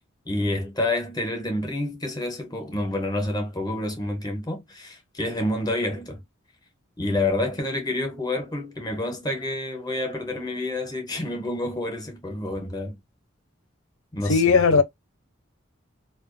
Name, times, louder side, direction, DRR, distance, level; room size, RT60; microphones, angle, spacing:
voice 1, 0.3-6.2 7.0-13.0 14.1-14.8, left 2 dB, 20° left, 0.6 m, -28 dB
voice 2, 14.3-14.8, left 5 dB, 85° left, 0.5 m, -17 dB
2.3 x 2.2 x 2.5 m
head